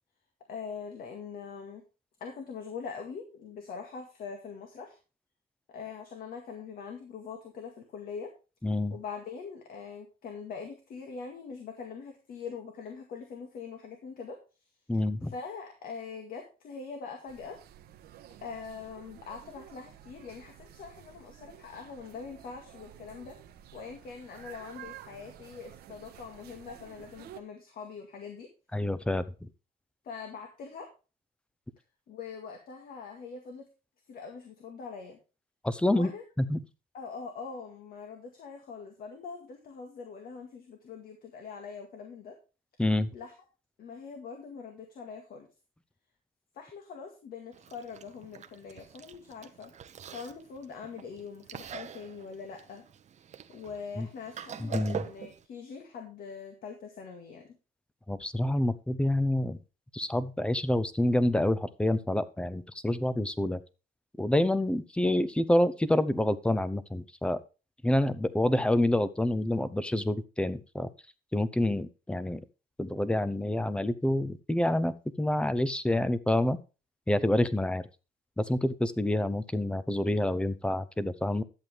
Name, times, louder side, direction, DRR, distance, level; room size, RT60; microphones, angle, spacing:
voice 1, 0.5-1.8 2.2-5.0 5.7-8.3 8.9-14.7 15.2-17.6 18.4-23.4 23.7-28.5 30.0-30.9 32.1-33.7 34.1-35.2 35.9-36.2 36.9-42.4 43.1-43.3 43.8-45.5 46.5-49.7 50.1-52.8 53.5-57.6, left 5 dB, 60° left, 4 dB, 2.1 m, -43 dB
voice 2, 8.6-8.9 14.9-15.3 28.7-29.5 35.6-36.1 36.4-36.6 42.8-43.1 54.0-54.1 54.6-55.0 58.1-59.6 59.9-63.6 64.2-67.4 67.8-70.9 71.3-72.4 72.8-76.6 77.1-77.8 78.4-81.4, left 1 dB, 5° left, 16 dB, 0.8 m, -27 dB
sound 1, 17.3-27.4, right 11 dB, 70° right, 1.2 m, -51 dB
Chewing mastication, 47.5-55.4, right 8 dB, 45° right, 0.9 m, -44 dB
11.5 x 7.9 x 3.5 m, 0.31 s
cardioid pair, 110°, 17 cm